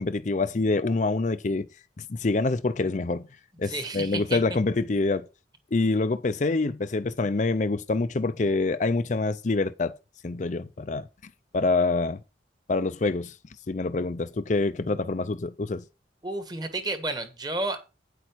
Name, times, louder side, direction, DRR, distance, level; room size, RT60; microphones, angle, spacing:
voice 1, 0.0-1.7 2.0-3.3 3.6-5.3 5.7-10.0 10.2-11.1 11.5-12.2 12.7-13.3 13.7-15.8, left 3 dB, 40° left, 0.5 m, -26 dB
voice 2, 3.6-4.4 16.2-17.8, right 2 dB, 20° right, 1.4 m, -31 dB
9.2 x 8.6 x 4.6 m
head